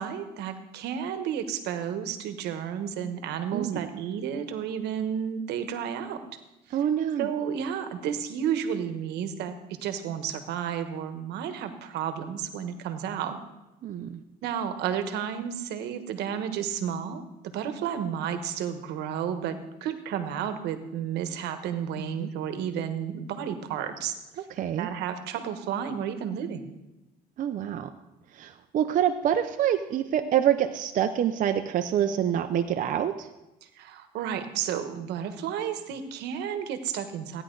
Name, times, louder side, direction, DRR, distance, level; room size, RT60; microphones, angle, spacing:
voice 1, 0.0-6.3 7.2-9.5 9.8-13.4 14.4-17.2 17.5-24.1 24.8-26.7 33.8-37.4, right 8 dB, 80° right, 9 dB, 1.2 m, -32 dB
voice 2, 3.5-3.9 6.7-7.3 13.8-14.2 22.2-22.3 24.5-24.9 27.4-27.9 28.3-33.3, right 10 dB, 50° right, 7 dB, 0.6 m, -26 dB
15.5 x 10.0 x 3.9 m, 0.98 s
cardioid pair, 110°, 17 cm